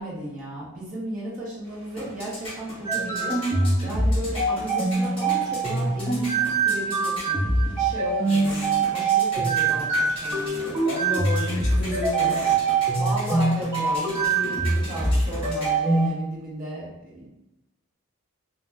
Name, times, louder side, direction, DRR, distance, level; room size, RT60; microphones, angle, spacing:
voice 1, 0.0-3.4 3.8-6.4 6.6-10.7 12.9-17.3, right 1 dB, 35° right, -7 dB, 0.9 m, -35 dB
sound 1, 1.6-16.1, left 1 dB, 25° left, 1.0 m, -40 dB
sound 2, 2.8-16.1, right 3 dB, 10° right, 0.4 m, -23 dB
voice 2, 10.8-12.6 14.4-15.2, left 2 dB, 55° left, -1 dB, 0.6 m, -32 dB
2.4 x 2.2 x 3.3 m, 0.93 s
head